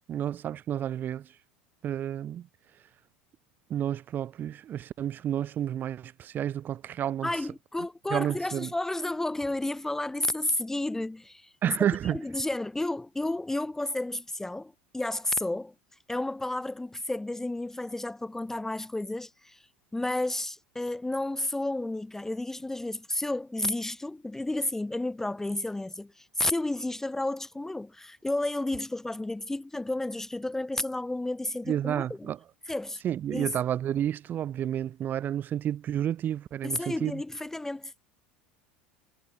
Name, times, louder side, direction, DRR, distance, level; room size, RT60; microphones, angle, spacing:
voice 1, 0.1-1.3 1.8-2.5 3.7-7.3 8.1-8.7 11.6-12.2 31.7-32.4 33.0-37.2, right 10 dB, 35° right, 0.8 m, -30 dB
voice 2, 7.2-11.5 12.1-15.7 16.1-19.6 19.9-32.3 32.7-33.0 33.3-33.5 36.6-37.9, left 2 dB, 10° left, 0.6 m, -32 dB
figure-of-eight pair, 75°, 5 cm